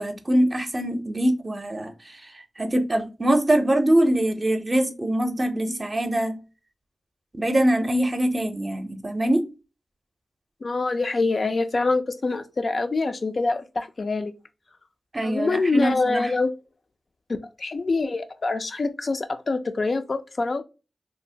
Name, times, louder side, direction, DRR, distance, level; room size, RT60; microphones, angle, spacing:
voice 1, 0.0-6.4 7.3-9.4 15.1-16.3, right 1 dB, 40° right, 0.5 m, -23 dB
voice 2, 10.6-14.3 15.2-16.5 17.6-20.6, left 3 dB, 60° left, 0.3 m, -25 dB
2.7 x 2.0 x 2.7 m
cardioid pair, 40°, 0 cm